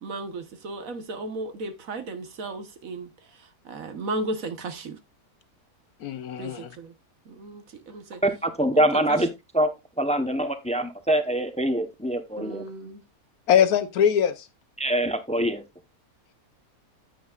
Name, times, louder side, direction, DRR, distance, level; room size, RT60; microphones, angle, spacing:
voice 1, 0.0-3.1 3.6-5.0 6.4-6.9 7.3-8.2 8.7-8.8 9.1-9.2 12.3-13.0, right 2 dB, 65° right, 1.5 m, -35 dB
voice 2, 6.0-6.7 13.5-14.5, left 8 dB, 80° left, 1.4 m, -22 dB
voice 3, 8.2-9.3 9.5-9.7 10.0-12.6 14.8-15.6, right 1 dB, 5° left, 0.6 m, -24 dB
9.3 x 9.3 x 2.4 m
omnidirectional pair, 1.6 m